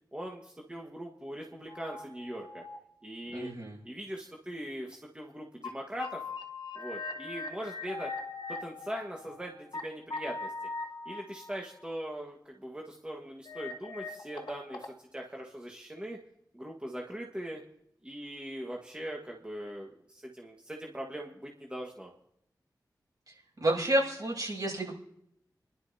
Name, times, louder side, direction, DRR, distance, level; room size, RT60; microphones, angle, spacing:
voice 1, 0.1-2.6 3.0-3.5 3.8-6.2 6.7-8.1 8.5-10.5 11.0-16.2 16.5-17.6 18.0-22.1, equal, 15° right, 0 dB, 1.5 m, -41 dB
sound 1, 1.7-2.8 3.4-3.5 5.3-5.4 5.6-5.7 6.0-9.8 10.1-12.0 13.5-14.9, left 3 dB, 85° left, 1.4 m, -41 dB
voice 2, 3.3-3.8 23.6-24.9, right 1 dB, 60° right, -4 dB, 7.0 m, -29 dB
28.0 x 11.5 x 2.8 m, 0.75 s
wide cardioid pair, 70°, 7 cm